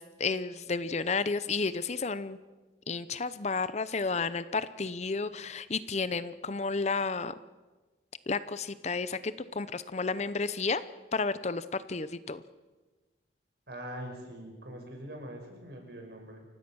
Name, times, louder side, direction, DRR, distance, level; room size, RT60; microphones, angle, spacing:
voice 1, 0.0-2.4 2.9-7.3 8.3-10.8 11.1-12.4, left 4 dB, 40° left, 14 dB, 0.7 m, -32 dB
voice 2, 13.7-16.4, equal, 60° right, 3 dB, 5.7 m, -43 dB
29.0 x 16.0 x 6.3 m, 1.2 s
head